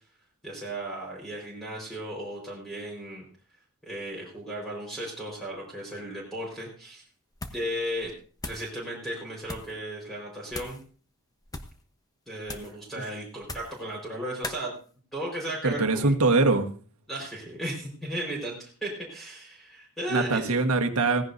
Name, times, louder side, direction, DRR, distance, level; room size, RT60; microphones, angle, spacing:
voice 1, 0.4-3.2 3.8-7.0 7.5-8.1 8.4-10.8 12.3-14.7 15.1-16.2 17.1-20.4, right 1 dB, ahead, -2 dB, 4.7 m, -35 dB
sound 1, 7.3-7.7 8.0-8.7 9.4-9.8 10.5-10.8 11.4-11.8 12.4-12.8 13.4-13.8 14.4-14.6, left 2 dB, 15° left, 1.0 m, -39 dB
voice 2, 15.6-16.7 20.1-21.2, right 3 dB, 70° right, 4 dB, 1.5 m, -23 dB
17.0 x 15.5 x 2.7 m, 0.41 s
head